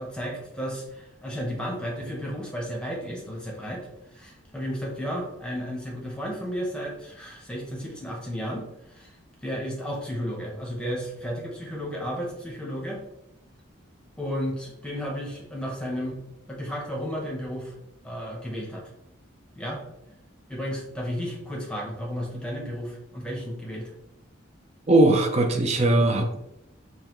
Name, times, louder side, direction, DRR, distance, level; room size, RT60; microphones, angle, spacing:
voice 1, 0.0-9.2 9.4-13.0 14.2-16.2 16.5-17.7 18.0-18.9 19.6-19.8 20.5-23.9, equal, 5° left, -2 dB, 0.9 m, -33 dB
voice 2, 24.9-26.4, right 2 dB, 30° right, 4 dB, 0.5 m, -20 dB
5.3 x 2.2 x 3.0 m, 0.82 s
head